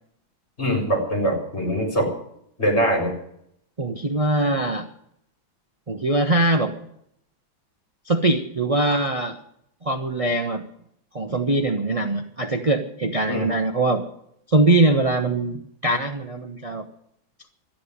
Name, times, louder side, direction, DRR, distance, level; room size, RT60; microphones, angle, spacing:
voice 1, 0.6-2.1 2.6-3.1 13.3-13.5, equal, 30° left, 0 dB, 4.7 m, -22 dB
voice 2, 3.8-4.9 5.9-6.7 8.1-9.4 9.8-10.6 11.1-14.0 14.5-16.8, right 2 dB, 45° right, 4 dB, 0.4 m, -22 dB
12.5 x 10.0 x 9.9 m, 0.73 s
omnidirectional pair, 2.2 m